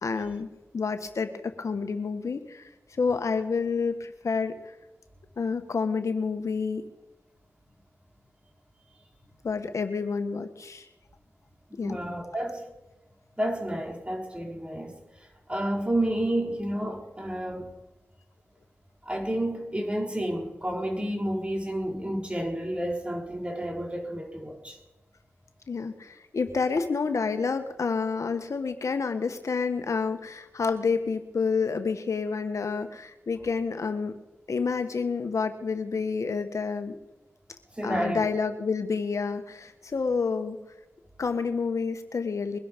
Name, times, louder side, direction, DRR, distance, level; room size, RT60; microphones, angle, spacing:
voice 1, 0.0-0.5 0.7-2.7 3.0-4.7 5.4-6.8 9.4-10.9 11.8-12.0 25.7-34.2 34.5-37.0 37.8-40.6 41.2-42.6, left 5 dB, 75° left, 1.3 m, -29 dB
voice 2, 11.7-12.7 13.4-15.0 15.5-17.7 19.0-24.8 37.8-38.3, right 1 dB, 20° right, 4.0 m, -30 dB
22.5 x 12.0 x 5.3 m
cardioid pair, 45°, 5 cm